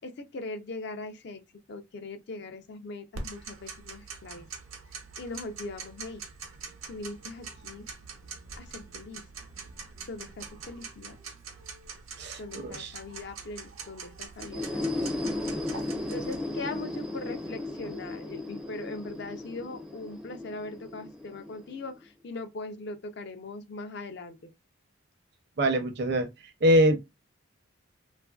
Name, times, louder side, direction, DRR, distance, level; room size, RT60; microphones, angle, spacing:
voice 1, 0.0-1.4 1.7-4.5 5.2-6.2 6.9-7.9 8.6-9.2 10.1-11.1 12.4-15.3 16.1-24.4, left 2 dB, 55° left, 0.4 m, -40 dB
Tick-tock, 3.1-16.4, right 5 dB, 85° right, 0.7 m, -44 dB
voice 2, 12.2-12.9 25.6-26.3 26.6-27.1, equal, 50° right, 0.6 m, -24 dB
sound 1, 14.4-22.0, left 2 dB, 5° right, 0.4 m, -35 dB
3.0 x 2.4 x 2.3 m
head